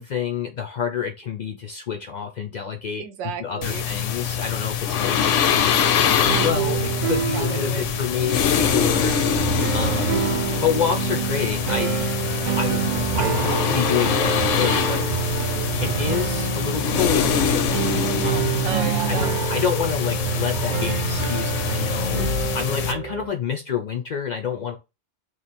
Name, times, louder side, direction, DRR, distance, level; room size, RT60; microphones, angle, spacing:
voice 1, 0.0-3.0 3.4-12.2 12.6-15.0 15.8-22.3 22.5-24.8, left 7 dB, 60° left, 0.4 m, -28 dB
voice 2, 3.0-3.9 7.3-7.8 8.2-8.3 15.4-15.7 18.6-19.3, right 7 dB, 80° right, 0.9 m, -32 dB
sound 1, 3.6-22.9, left 8 dB, 80° left, 0.9 m, -24 dB
sound 2, 6.3-23.3, right 9 dB, 60° right, 0.5 m, -27 dB
3.1 x 2.5 x 4.1 m
omnidirectional pair, 1.2 m